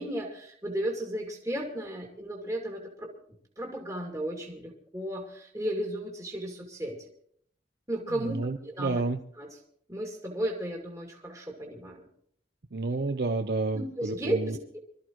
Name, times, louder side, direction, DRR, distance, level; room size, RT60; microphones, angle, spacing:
voice 1, 0.0-3.1 3.6-7.1 7.9-8.4 8.6-9.0 9.4-9.6 9.9-12.1 13.7-14.8, right 1 dB, 20° right, -1 dB, 2.4 m, -34 dB
voice 2, 8.3-9.2 12.7-14.5, right 3 dB, 60° right, 7 dB, 0.7 m, -30 dB
25.0 x 13.5 x 3.1 m, 0.63 s
head